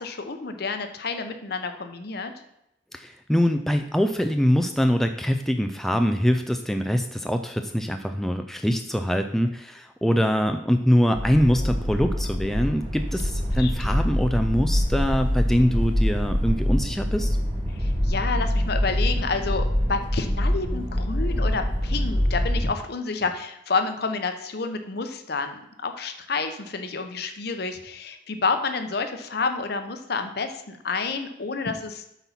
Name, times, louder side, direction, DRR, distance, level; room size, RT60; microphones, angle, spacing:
voice 1, 0.0-2.3 13.6-14.1 17.7-32.0, left 4 dB, 60° left, 7 dB, 0.8 m, -29 dB
voice 2, 2.9-17.4, equal, ahead, 6 dB, 0.3 m, -23 dB
sound 1, 11.1-22.7, equal, 25° right, 1.5 m, -25 dB
8.0 x 4.2 x 5.8 m, 0.80 s
head